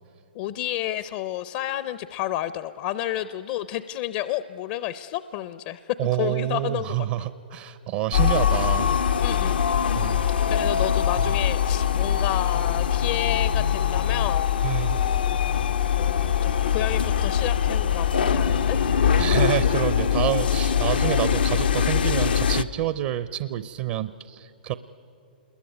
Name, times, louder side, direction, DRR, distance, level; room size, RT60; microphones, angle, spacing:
voice 1, 0.3-5.8 6.2-7.1 9.2-9.6 10.5-14.5 14.9-15.0 16.0-18.8, left 13 dB, 45° left, 14 dB, 0.6 m, -30 dB
voice 2, 6.0-8.9 9.9-10.3 14.6-15.1 19.2-24.7, right 14 dB, 45° right, 14 dB, 0.7 m, -28 dB
sound 1, 8.1-22.6, left 8 dB, 80° left, 0.7 m, -22 dB
27.5 x 21.5 x 9.5 m, 2.8 s
hypercardioid pair, 125°, 5 cm